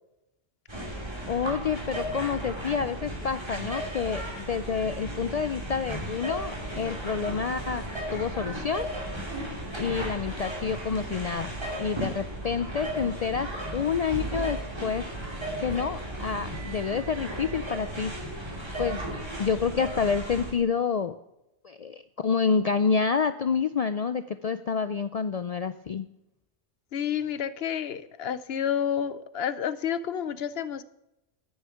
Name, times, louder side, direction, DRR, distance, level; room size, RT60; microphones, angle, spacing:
sound 1, 0.7-20.5, right 1 dB, 20° right, 2.9 m, -35 dB
voice 1, 1.3-7.8 8.1-8.9 9.8-11.5 11.8-15.0 15.6-18.1 18.8-19.1 19.4-21.1 21.6-26.1, left 6 dB, 80° left, 11 dB, 0.3 m, -28 dB
voice 2, 26.9-30.8, left 8 dB, 60° left, 15 dB, 0.8 m, -30 dB
9.8 x 9.7 x 5.6 m, 0.87 s
omnidirectional pair, 1.2 m